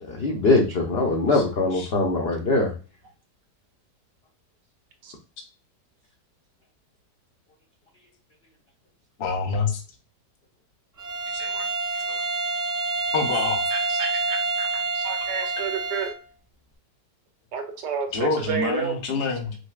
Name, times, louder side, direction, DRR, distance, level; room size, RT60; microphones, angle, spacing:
voice 1, 0.0-2.7, left 3 dB, 85° left, 1 dB, 0.5 m, -22 dB
voice 2, 9.2-9.8 11.3-11.7 12.1-12.2 13.1-13.6 15.6-15.7 18.1-19.6, left 4 dB, 50° left, 4 dB, 0.7 m, -27 dB
Bowed string instrument, 11.0-16.2, right 3 dB, 55° right, 0.4 m, -27 dB
voice 3, 13.7-14.7 14.9-16.1 17.5-18.9, right 6 dB, 75° right, 4 dB, 1.4 m, -30 dB
5.3 x 2.0 x 2.3 m, 0.36 s
omnidirectional pair, 1.9 m